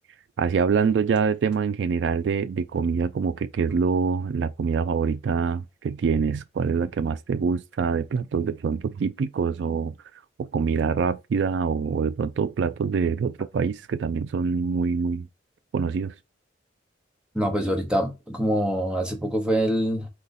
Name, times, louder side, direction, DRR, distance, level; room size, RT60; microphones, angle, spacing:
voice 1, 0.4-9.9 10.4-15.3 15.7-16.1, right 5 dB, 70° right, 0.3 m, -25 dB
voice 2, 17.3-20.1, equal, 5° right, 1.0 m, -25 dB
3.9 x 2.9 x 4.0 m
head